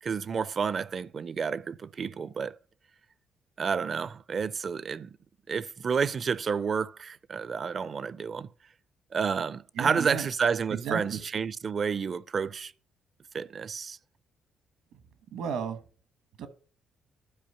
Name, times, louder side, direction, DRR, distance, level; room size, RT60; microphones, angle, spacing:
voice 1, 0.0-2.6 3.6-5.1 5.5-8.5 9.1-12.7 13.3-14.0, right 6 dB, 45° right, 0.5 m, -30 dB
voice 2, 9.8-10.3 10.7-11.2 15.3-15.8 16.4-16.5, right 7 dB, 80° right, 1.4 m, -33 dB
12.0 x 4.8 x 5.7 m
cardioid pair, 90°, 0 cm